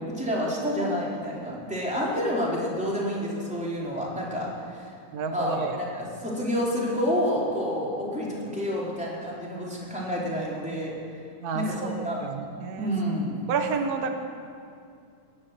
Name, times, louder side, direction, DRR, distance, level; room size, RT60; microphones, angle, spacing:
voice 1, 0.0-4.9 5.3-10.9 11.5-12.2 12.8-13.4, equal, ahead, -6 dB, 3.6 m, -29 dB
voice 2, 5.1-5.8 11.4-11.9 12.2-12.9 13.5-14.1, right 5 dB, 55° right, 4 dB, 1.0 m, -30 dB
21.0 x 8.6 x 8.1 m, 2.4 s
omnidirectional pair, 3.5 m